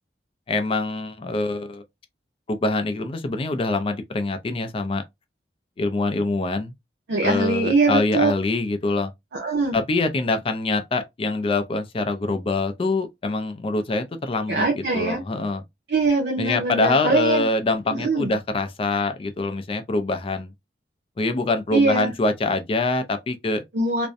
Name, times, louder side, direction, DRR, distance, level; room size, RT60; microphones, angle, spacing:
voice 1, 0.5-1.8 2.5-5.0 5.8-6.7 7.2-9.1 9.7-15.6 16.4-20.5 21.2-23.6, left 3 dB, 30° left, 0.3 m, -24 dB
voice 2, 7.1-8.3 9.3-9.8 14.5-15.2 15.9-17.5 17.9-18.3 21.7-22.1 23.7-24.1, right 3 dB, 75° right, 0.6 m, -22 dB
2.5 x 2.1 x 2.4 m
head